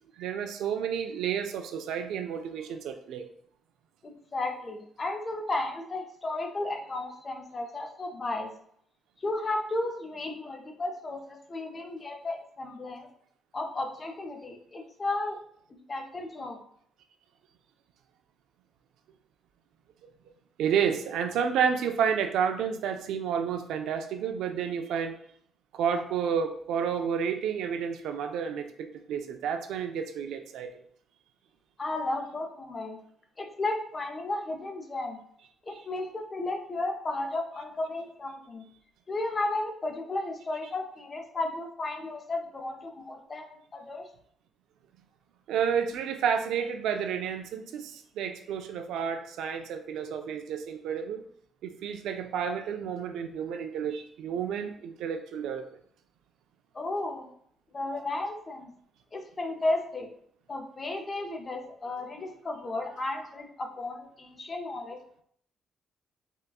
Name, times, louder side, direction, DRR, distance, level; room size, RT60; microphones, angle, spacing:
voice 1, 0.2-3.3 20.6-25.2 25.7-30.7 45.5-51.2 51.6-55.7, right 7 dB, 85° right, 6 dB, 0.3 m, -30 dB
voice 2, 4.0-8.5 9.2-13.1 13.5-15.4 15.9-16.6 31.8-33.0 33.4-35.2 35.6-38.6 39.1-44.1 56.7-57.3 57.7-58.7 59.1-60.1 60.5-65.0, left 2 dB, 35° left, 3 dB, 0.6 m, -34 dB
3.7 x 2.2 x 2.3 m, 0.64 s
cardioid pair, 90°, 0 cm